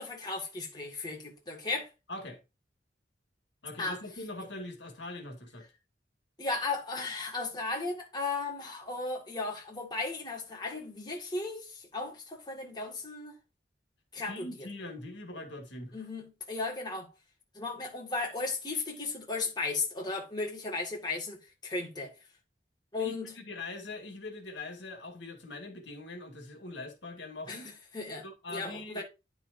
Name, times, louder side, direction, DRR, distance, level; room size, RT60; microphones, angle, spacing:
voice 1, 0.0-1.9 3.8-4.0 6.4-13.4 14.1-14.7 15.9-17.1 17.5-22.1 22.9-23.3 27.5-29.0, left 3 dB, 25° left, 1.9 m, -35 dB
voice 2, 2.1-2.4 3.6-5.7 14.2-16.1 23.0-23.2 23.5-27.7 28.2-29.0, left 2 dB, 75° left, 2.0 m, -42 dB
10.0 x 6.1 x 2.6 m
head